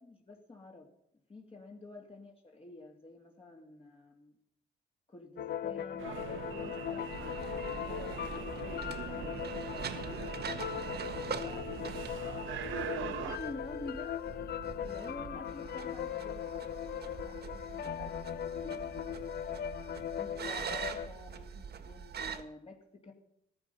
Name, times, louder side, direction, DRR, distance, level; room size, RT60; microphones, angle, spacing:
voice 1, 0.0-0.9 1.3-4.3 5.1-10.3 11.4-12.3 13.0-14.2 14.8-19.2 20.2-23.1, left 2 dB, 30° left, 0 dB, 2.5 m, -50 dB
sound 1, 5.4-21.1, left 10 dB, 55° left, 0.6 m, -39 dB
sound 2, 6.0-13.4, right 9 dB, 80° right, 1.2 m, -42 dB
sound 3, 7.1-22.4, right 6 dB, 55° right, 1.7 m, -44 dB
14.5 x 13.0 x 5.5 m, 0.78 s
cardioid pair, 90°, 20 cm